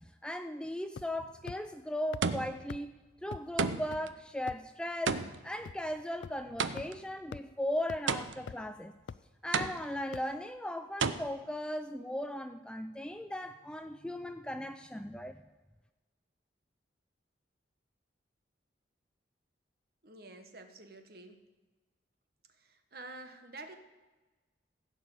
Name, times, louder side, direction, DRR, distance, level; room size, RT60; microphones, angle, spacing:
voice 1, 0.2-2.9 3.2-5.2 5.4-8.9 9.4-15.4, left 1 dB, 5° left, 9 dB, 0.3 m, -37 dB
sound 1, 1.0-1.2 1.5-1.6 2.1-2.2 2.7-2.8 3.3-3.4 3.9-4.0 4.5-4.7 5.1-5.2 5.7-5.8 6.2-6.3 6.8-6.9 7.3-7.4 7.9-8.0 8.5-8.7 9.1-9.2 9.6-9.7 10.1-10.2, left 5 dB, 80° left, 0.4 m, -42 dB
sound 2, 1.2-1.6 2.2-2.8 3.6-4.1 5.1-7.1 8.1-8.7 9.5-10.1 11.0-11.1, right 5 dB, 85° right, 0.6 m, -33 dB
voice 2, 20.0-21.4 22.6-23.8, right 2 dB, 55° right, 6 dB, 1.3 m, -49 dB
16.0 x 5.3 x 8.1 m, 1.2 s
head